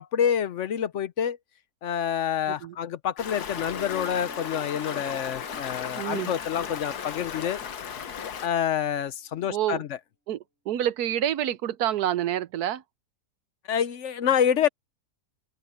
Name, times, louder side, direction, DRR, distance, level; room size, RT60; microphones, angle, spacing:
voice 1, 0.0-1.4 1.8-7.6 8.4-9.9 13.7-14.7, left 9 dB, 60° left, 0.9 m, -27 dB
Stream, 3.2-8.5, left 7 dB, 85° left, 1.7 m, -36 dB
sound 1, 3.6-8.5, left 1 dB, 45° left, 7.9 m, -49 dB
voice 2, 6.0-6.3 9.5-9.8 10.3-12.8, right 11 dB, 80° right, 1.3 m, -28 dB
open air
omnidirectional pair, 1.6 m